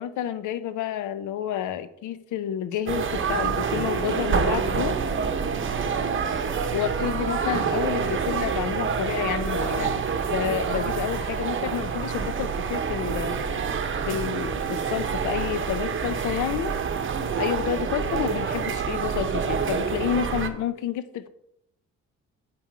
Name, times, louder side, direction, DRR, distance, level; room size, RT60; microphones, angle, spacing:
voice 1, 0.0-5.0 6.7-13.4 14.1-16.7 17.4-21.3, left 10 dB, 85° left, 13 dB, 0.8 m, -29 dB
sound 1, 2.9-20.5, right 6 dB, 40° right, 0.9 m, -27 dB
8.7 x 5.7 x 4.8 m, 0.78 s
cardioid pair, 90°, 30 cm